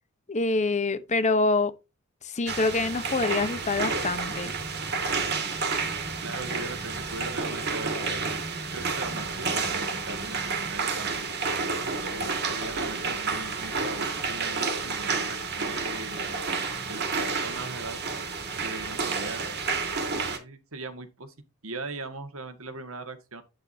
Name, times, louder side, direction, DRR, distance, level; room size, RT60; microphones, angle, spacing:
voice 1, 0.3-1.7 2.2-4.5, left 3 dB, 35° left, 0.8 m, -26 dB
sound 1, 2.5-20.4, right 4 dB, 55° right, 2.0 m, -30 dB
voice 2, 6.2-8.4 8.7-11.3 12.0-16.2 16.9-18.0 18.6-19.4 20.1-21.3 21.6-23.4, right 3 dB, 90° right, 1.7 m, -40 dB
9.3 x 6.9 x 2.7 m
head